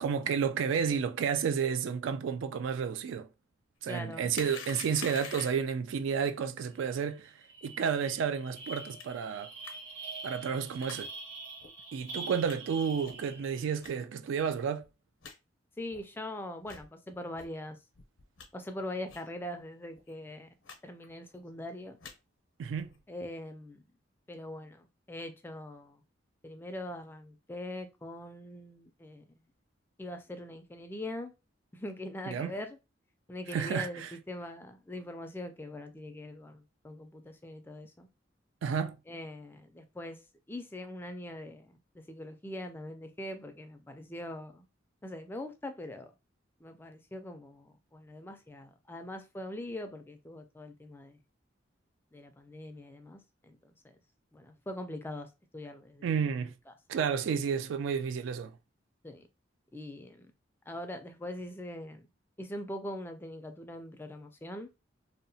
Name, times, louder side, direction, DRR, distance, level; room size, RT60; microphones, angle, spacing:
voice 1, 0.0-3.3 3.8-7.3 7.6-9.5 10.2-11.1 11.9-14.9 22.6-22.9 32.3-32.5 33.5-34.1 38.6-39.0 56.0-56.5 56.9-58.5, right 7 dB, 80° right, 0.3 m, -31 dB
voice 2, 3.9-4.3 15.8-17.8 18.5-20.5 20.8-22.0 23.1-23.8 24.3-26.0 26.4-29.2 30.0-31.3 31.7-32.8 33.3-38.1 39.1-40.2 40.5-44.7 45.0-46.1 46.6-51.2 52.1-54.0 54.3-56.1 56.7-56.8 59.0-59.3 59.7-60.3 60.7-62.1 62.4-64.7, left 1 dB, 10° left, 0.3 m, -42 dB
sound 1, 4.3-5.8 9.0-9.1 9.6-9.7 10.8-11.0 11.6-11.7 12.5-12.6 13.0-13.3 13.8-13.9 14.5-14.6 14.8-14.9 15.2-15.4 15.9-16.0 16.6-16.9 17.4-17.5 17.9-18.5 19.1-19.3 19.6-19.7 19.9-20.1 20.6-20.8 21.0-21.4 21.8-22.1 22.7-23.0, left 5 dB, 80° left, 0.6 m, -46 dB
sound 2, 6.8-6.9 7.2-13.7, right 3 dB, 60° right, 1.3 m, -45 dB
2.8 x 2.0 x 2.6 m
head